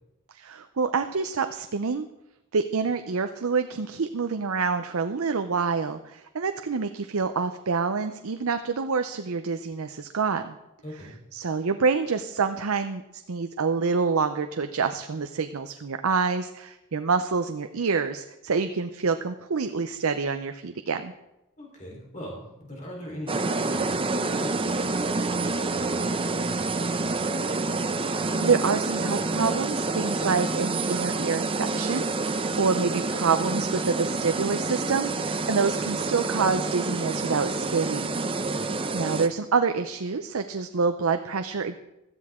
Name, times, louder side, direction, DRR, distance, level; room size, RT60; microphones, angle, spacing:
voice 1, 0.3-2.1 2.5-10.6 11.3-13.0 13.3-21.1 28.1-38.2 38.9-41.8, right 5 dB, 70° right, 8 dB, 0.6 m, -27 dB
voice 2, 10.8-11.1 21.6-27.3 38.4-38.7, equal, 35° left, -2 dB, 3.8 m, -41 dB
sound 1, 23.3-39.3, right 3 dB, 25° right, 0.7 m, -28 dB
16.5 x 13.0 x 3.7 m, 0.93 s
head